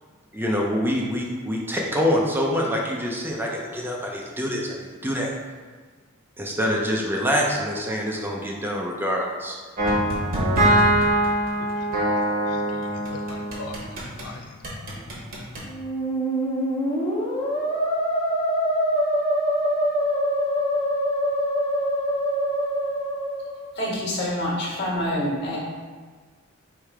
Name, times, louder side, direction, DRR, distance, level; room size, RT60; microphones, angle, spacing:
voice 1, 0.3-5.3 6.4-9.6, equal, 10° right, -2 dB, 0.5 m, -25 dB
sound 1, 9.8-14.3 14.6-15.7, right 1 dB, 40° right, 1.0 m, -23 dB
voice 2, 11.6-14.6 14.9-15.3, left 2 dB, 80° left, 3 dB, 0.3 m, -42 dB
Musical instrument, 15.6-23.7, equal, 25° left, 0.7 m, -24 dB
voice 3, 23.7-25.6, left 1 dB, 55° left, -5 dB, 1.5 m, -26 dB
3.3 x 3.2 x 4.8 m, 1.5 s
head